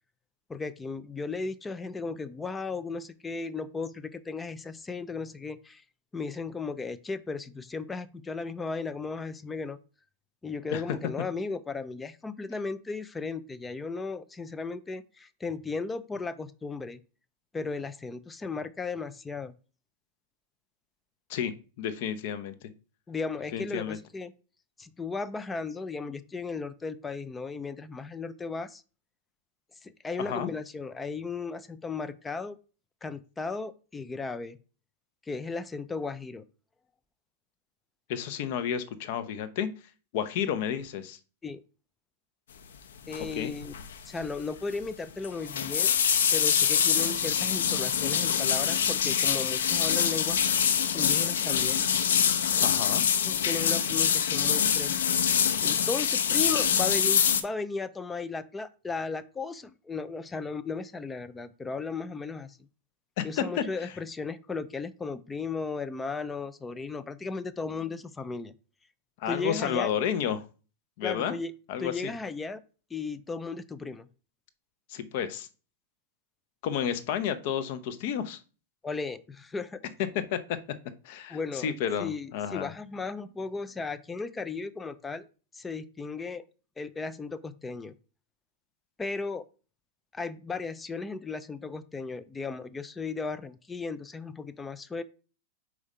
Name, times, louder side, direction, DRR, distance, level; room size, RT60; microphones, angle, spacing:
voice 1, 0.5-5.8 6.1-9.8 10.4-17.0 17.5-19.5 23.1-24.3 24.8-28.8 29.8-32.6 33.0-34.6 35.3-36.4 41.4-41.6 43.1-43.7 44.1-45.9 46.3-50.4 50.9-51.9 53.3-54.9 55.3-62.6 63.2-68.5 69.3-69.9 71.0-71.5 71.8-72.6 72.9-74.1 78.8-79.8 81.3-81.7 82.0-85.3 85.5-86.4 86.8-87.9 89.0-89.4 90.1-95.0, left 4 dB, 10° left, 14 dB, 0.4 m, -35 dB
voice 2, 21.3-22.7 23.5-24.0 30.2-30.5 38.1-39.7 40.1-41.2 43.3-43.5 52.6-53.0 63.2-63.9 69.2-70.4 71.0-71.3 71.7-72.1 74.9-75.5 76.6-78.4 80.1-80.4 81.0-82.7, left 8 dB, 50° left, 12 dB, 0.7 m, -31 dB
sound 1, 43.1-43.4 43.6-43.9 44.2-44.3 45.2-57.4, left 8 dB, 85° left, 0.7 m, -25 dB
5.1 x 4.8 x 4.2 m, 0.36 s
supercardioid pair, 145°, 0 cm